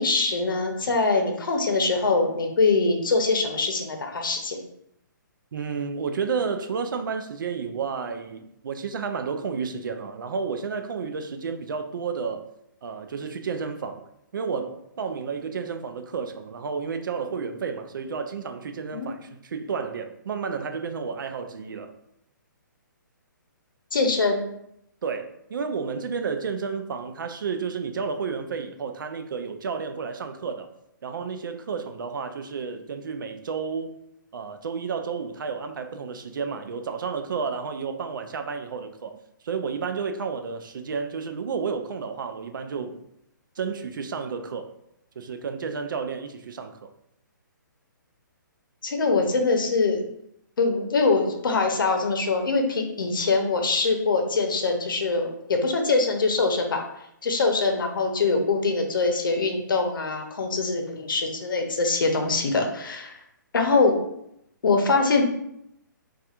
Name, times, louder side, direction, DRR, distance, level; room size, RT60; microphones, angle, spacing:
voice 1, 0.0-4.6 18.9-19.1 23.9-24.4 48.8-50.0 50.6-56.9 57.2-63.2 63.5-64.0 64.6-65.2, left 3 dB, 80° left, 3 dB, 0.7 m, -23 dB
voice 2, 5.5-12.5 12.8-14.0 14.3-22.0 25.0-30.7 31.0-33.9 34.3-39.2 39.4-43.0 43.6-44.7 45.2-46.9, right 5 dB, 75° right, 7 dB, 0.4 m, -31 dB
4.1 x 2.4 x 2.4 m, 0.78 s
hypercardioid pair, 155°, 11 cm